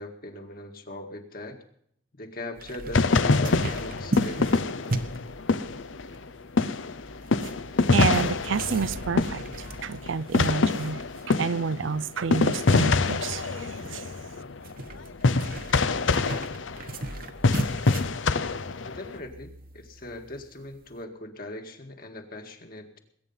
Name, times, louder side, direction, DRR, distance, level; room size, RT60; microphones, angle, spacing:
voice 1, 0.0-1.6 2.2-4.7 18.8-23.0, left 1 dB, 50° left, 2.0 m, -40 dB
sound 1, 2.6-21.0, right 1 dB, 50° right, 1.3 m, -38 dB
sound 2, 2.9-6.3 6.6-19.2, left 3 dB, 85° left, 0.8 m, -25 dB
voice 2, 7.9-9.4 9.8-11.0 11.3-13.5 13.9-14.0, right 5 dB, 80° right, 0.5 m, -28 dB
20.5 x 9.3 x 5.6 m
head